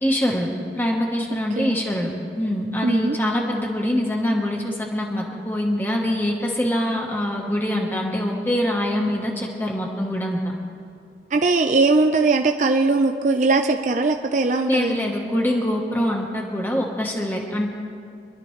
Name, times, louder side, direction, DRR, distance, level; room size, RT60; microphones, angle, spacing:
voice 1, 0.0-0.5 0.7-2.1 2.4-10.4 14.7-17.7, equal, 10° left, 0 dB, 1.2 m, -24 dB
voice 2, 2.8-3.2 11.3-15.1, right 3 dB, 45° right, 4 dB, 0.5 m, -20 dB
25.5 x 11.5 x 3.2 m, 2.4 s
head